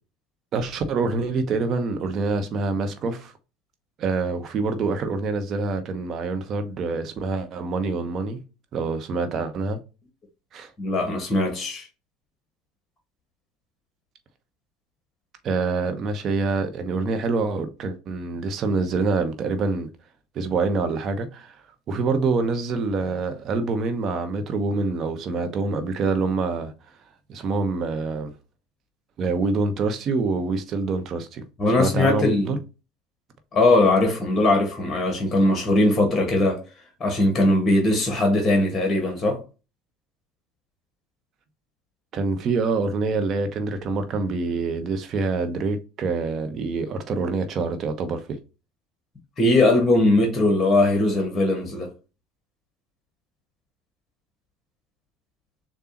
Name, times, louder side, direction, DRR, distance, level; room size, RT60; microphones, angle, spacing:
voice 1, 0.5-3.3 4.0-8.4 8.7-9.8 10.5-10.7 15.4-19.9 20.3-21.6 21.9-26.7 27.3-28.3 29.2-31.4 31.8-32.6 42.1-48.4, right 4 dB, 45° right, 0.9 m, -26 dB
voice 2, 10.8-11.9 31.6-32.6 33.5-36.6 37.0-39.4 49.4-51.9, left 2 dB, 25° left, 1.5 m, -20 dB
6.8 x 2.3 x 2.9 m
hypercardioid pair, 70°, 0 cm